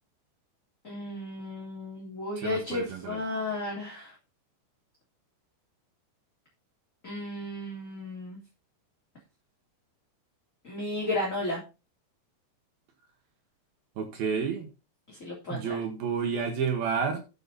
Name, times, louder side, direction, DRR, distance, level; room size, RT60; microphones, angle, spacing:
voice 1, 0.8-4.1 7.0-8.4 10.6-11.6 15.1-15.8, left 2 dB, 20° left, -4 dB, 2.8 m, -34 dB
voice 2, 2.4-3.2 14.0-14.7 15.5-17.2, right 6 dB, 60° right, 4 dB, 3.0 m, -30 dB
11.0 x 7.7 x 4.2 m, 0.30 s
omnidirectional pair, 5.6 m